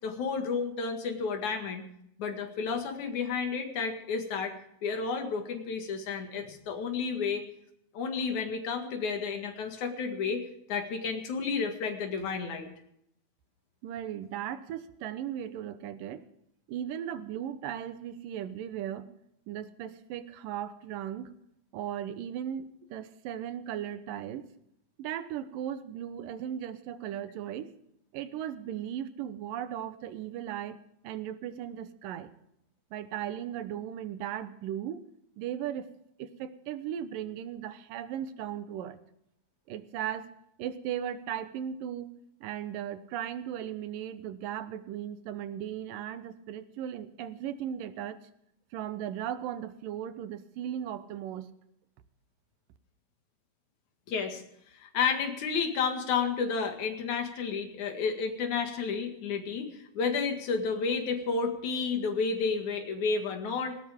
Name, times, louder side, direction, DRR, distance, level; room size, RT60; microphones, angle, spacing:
voice 1, 0.0-1.8 2.2-7.5 7.9-10.4 10.7-12.7 54.1-54.4 54.7-59.7 59.9-63.8, left 5 dB, 65° left, 5 dB, 3.3 m, -31 dB
voice 2, 13.8-16.2 16.7-19.1 19.5-21.3 21.7-24.5 25.0-27.7 28.1-32.3 32.9-35.0 35.4-35.9 36.2-39.0 39.7-40.3 40.6-42.1 42.4-48.2 48.7-51.5, right 10 dB, 90° right, 12 dB, 2.7 m, -37 dB
19.5 x 18.0 x 3.6 m, 0.75 s
omnidirectional pair, 3.8 m